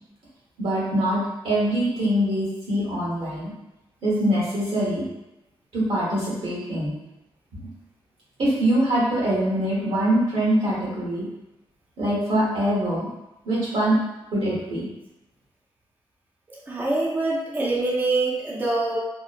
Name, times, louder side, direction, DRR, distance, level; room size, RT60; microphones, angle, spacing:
voice 1, 0.6-3.5 4.0-5.0 5.7-6.9 7.5-7.6 8.4-11.3 12.0-13.1 13.4-14.0 14.3-14.9, right 1 dB, 80° right, -6 dB, 1.1 m, -23 dB
voice 2, 16.5-19.0, right 2 dB, 20° right, -4 dB, 0.4 m, -25 dB
2.8 x 2.1 x 2.4 m, 0.97 s
wide cardioid pair, 125°, 10 cm